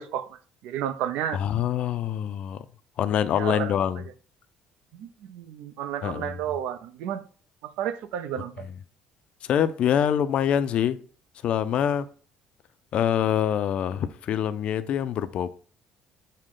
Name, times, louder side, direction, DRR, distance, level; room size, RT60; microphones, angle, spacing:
voice 1, 0.0-1.4 3.3-3.7 4.9-7.2 7.6-8.7, right 10 dB, 80° right, 0.5 m, -32 dB
voice 2, 1.3-2.6 3.0-4.0 6.0-6.3 9.5-11.0 11.4-12.1 12.9-15.5, left 9 dB, 55° left, 0.4 m, -25 dB
6.4 x 2.1 x 3.7 m
cardioid pair, 115°, 2 cm